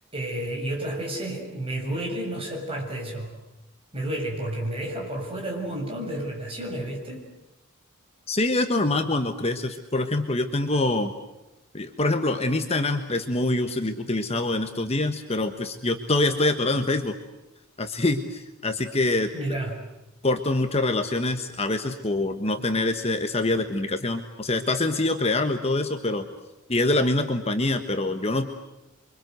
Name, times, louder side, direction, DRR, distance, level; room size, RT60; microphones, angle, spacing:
voice 1, 0.1-3.3 3.9-7.3 19.3-19.8, right 1 dB, 25° right, 0 dB, 7.0 m, -31 dB
voice 2, 8.3-11.1 11.7-17.1 17.8-19.3 20.2-26.3 26.7-28.5, left 2 dB, 30° left, 6 dB, 1.4 m, -25 dB
28.5 x 24.5 x 7.9 m, 0.97 s
head